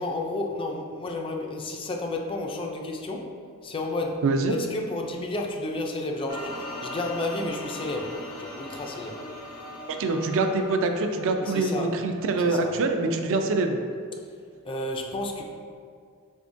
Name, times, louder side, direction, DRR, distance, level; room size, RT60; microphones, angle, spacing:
voice 1, 0.0-3.3 3.6-4.2 4.5-9.2 11.4-12.0 12.4-12.7 14.6-15.4, left 2 dB, 25° left, 1 dB, 0.3 m, -32 dB
voice 2, 4.2-4.5 9.9-13.8, right 3 dB, 60° right, 5 dB, 0.3 m, -25 dB
sound 1, 6.3-12.6, left 1 dB, 90° left, 0.7 m, -40 dB
4.3 x 3.5 x 2.5 m, 2.2 s
head